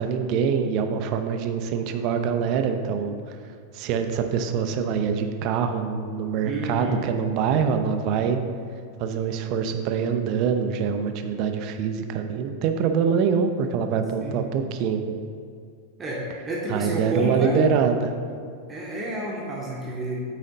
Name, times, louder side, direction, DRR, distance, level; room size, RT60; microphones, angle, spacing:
voice 1, 0.0-3.1 3.7-8.4 9.0-15.0 16.7-18.1, right 6 dB, 40° right, 6 dB, 0.5 m, -24 dB
voice 2, 6.4-7.0 14.2-14.4 16.0-17.7 18.7-20.2, right 1 dB, 20° right, -4 dB, 1.0 m, -29 dB
8.8 x 4.2 x 4.0 m, 2.2 s
figure-of-eight pair, 90°, 0 cm